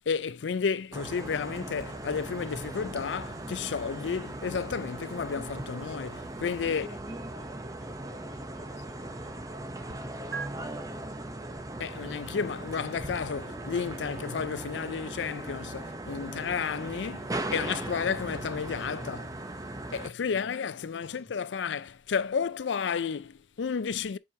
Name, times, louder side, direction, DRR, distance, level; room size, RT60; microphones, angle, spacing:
voice 1, 0.1-6.9 11.8-19.4 19.9-24.2, left 6 dB, 75° left, 0.5 m, -32 dB
sound 1, 0.9-20.1, right 1 dB, 20° right, 0.8 m, -38 dB
sound 2, 1.8-10.0 10.3-10.5, right 5 dB, 60° right, 0.8 m, -49 dB
voice 2, 6.6-11.5 20.2-20.5 21.0-21.3, equal, 35° right, 3.2 m, -54 dB
7.7 x 4.9 x 2.8 m
head